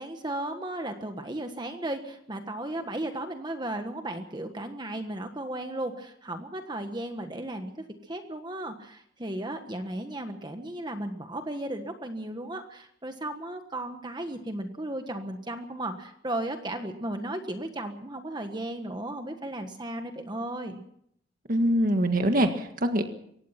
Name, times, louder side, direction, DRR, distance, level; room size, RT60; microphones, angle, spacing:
voice 1, 0.0-20.8, right 1 dB, 25° right, 6 dB, 1.5 m, -35 dB
voice 2, 21.5-23.0, right 1 dB, 50° right, 6 dB, 1.8 m, -24 dB
24.0 x 18.0 x 5.9 m, 0.69 s
head